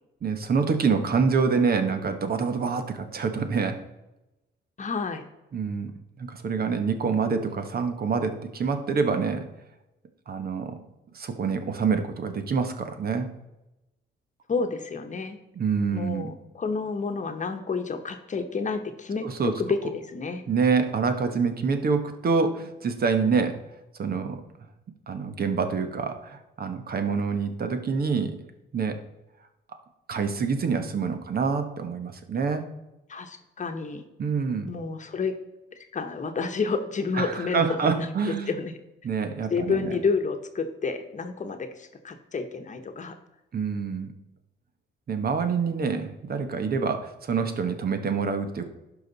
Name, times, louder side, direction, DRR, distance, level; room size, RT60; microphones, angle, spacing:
voice 1, 0.2-3.8 5.5-5.9 6.2-9.5 10.3-10.8 11.1-13.3 15.5-16.3 19.2-19.5 20.5-23.6 24.0-24.4 25.1-28.4 28.7-29.0 30.1-32.7 34.2-34.7 37.1-38.5 39.0-40.0 43.5-44.1 45.1-48.7, right 5 dB, 50° right, 8 dB, 1.2 m, -26 dB
voice 2, 4.8-5.2 14.5-15.4 15.9-20.4 33.1-34.0 34.7-35.3 35.8-38.7 39.5-43.2, left 4 dB, 40° left, 7 dB, 1.1 m, -30 dB
12.0 x 5.0 x 4.0 m, 0.97 s
cardioid pair, 90°, 20 cm